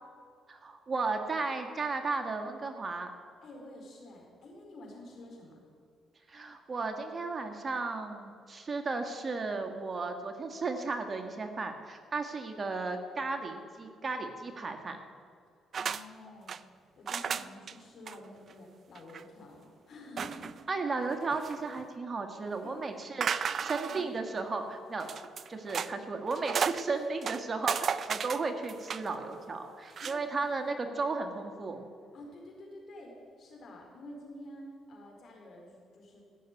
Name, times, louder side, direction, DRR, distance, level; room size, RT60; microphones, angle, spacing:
voice 1, 0.5-3.1 6.3-15.0 20.7-25.1 25.5-31.9, right 3 dB, 35° right, 5 dB, 1.6 m, -34 dB
voice 2, 3.4-5.6 15.8-16.6 17.0-20.5 22.6-22.7 23.5-24.1 30.0-31.0 31.3-31.5 32.1-36.2, left 1 dB, 60° left, 0 dB, 4.4 m, -49 dB
sound 1, 15.7-16.0 16.3-16.6 17.1-17.7 18.1-18.2 18.5-18.6 18.9-19.2 20.2-20.6 21.1-21.8 23.2-24.1 25.0-25.9 26.3-26.8 27.2-29.1 29.9-30.2, right 7 dB, 50° right, 0.5 m, -34 dB
15.5 x 6.6 x 9.5 m, 2.1 s
cardioid pair, 90°, 0 cm